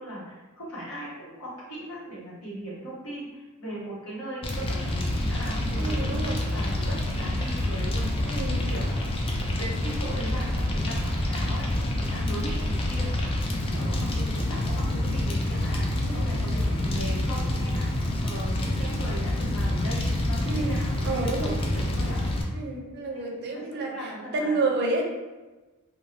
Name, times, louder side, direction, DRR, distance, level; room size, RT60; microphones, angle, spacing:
voice 1, 0.0-8.1 8.7-9.0 9.5-13.1 13.7-15.9 16.1-22.2 23.2-24.5, right 1 dB, 70° left, -7 dB, 1.2 m, -38 dB
Fire, 4.4-22.4, left 1 dB, 25° left, 0.3 m, -27 dB
voice 2, 5.7-6.4 8.3-8.7 16.0-16.3 20.5-21.5 22.5-25.0, right 3 dB, 50° right, 0 dB, 0.5 m, -30 dB
2.6 x 2.2 x 3.2 m, 1.2 s
head